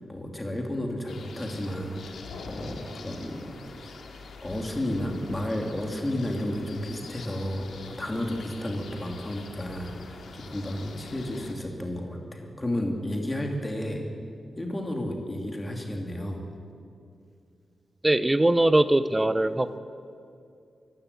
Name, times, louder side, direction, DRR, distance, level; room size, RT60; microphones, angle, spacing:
voice 1, 0.1-4.0 4.4-14.0 14.6-16.4, left 1 dB, 15° left, 2 dB, 2.6 m, -32 dB
sound 1, 1.1-11.5, left 4 dB, 90° left, 2.3 m, -44 dB
voice 2, 18.0-19.8, right 1 dB, 15° right, 13 dB, 0.6 m, -21 dB
24.5 x 14.5 x 8.4 m, 2.4 s
wide cardioid pair, 180°, 0 cm